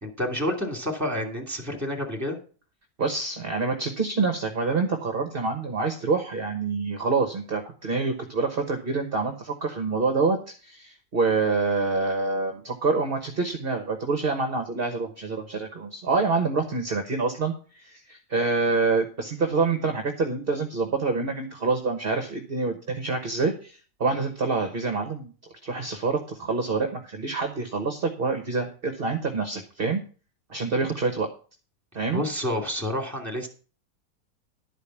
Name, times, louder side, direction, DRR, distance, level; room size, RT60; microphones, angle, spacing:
voice 1, 0.0-2.4 32.1-33.5, left 1 dB, 10° right, 2 dB, 2.3 m, -29 dB
voice 2, 3.0-25.3 25.6-30.0 30.5-31.3 31.9-32.2, right 4 dB, 35° right, 5 dB, 1.2 m, -26 dB
11.5 x 5.1 x 7.1 m, 0.39 s
omnidirectional pair, 1.9 m